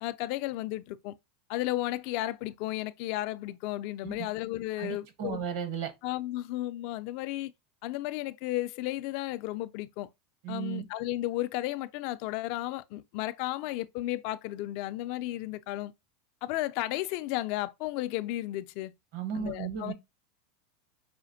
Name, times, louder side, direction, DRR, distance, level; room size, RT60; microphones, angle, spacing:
voice 1, 0.0-1.1 1.5-5.4 6.0-7.5 7.8-10.1 10.5-15.9 16.4-18.9 19.3-19.9, left 16 dB, 55° left, 0.3 m, -33 dB
voice 2, 4.8-5.9 10.4-10.8 19.1-19.9, right 8 dB, 60° right, 1.0 m, -35 dB
4.9 x 2.5 x 2.6 m
supercardioid pair, 150°, 0 cm